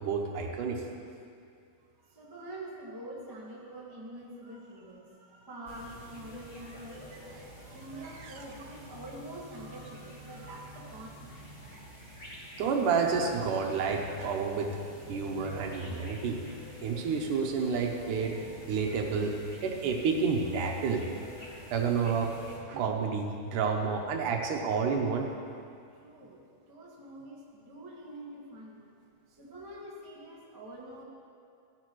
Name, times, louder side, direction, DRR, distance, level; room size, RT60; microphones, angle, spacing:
voice 1, 0.0-0.9 8.2-8.3 12.6-14.7 15.1-16.4 16.8-18.4 18.7-19.4 19.6-21.1 21.7-22.3 22.7-25.3, right 5 dB, 75° right, 2 dB, 2.3 m, -29 dB
voice 2, 2.1-11.1 26.0-28.8 29.4-31.0, right 1 dB, 25° right, -5 dB, 0.4 m, -46 dB
sound 1, 5.7-22.6, left 1 dB, 30° left, 1.2 m, -48 dB
15.5 x 10.0 x 3.1 m, 2.4 s
omnidirectional pair, 3.8 m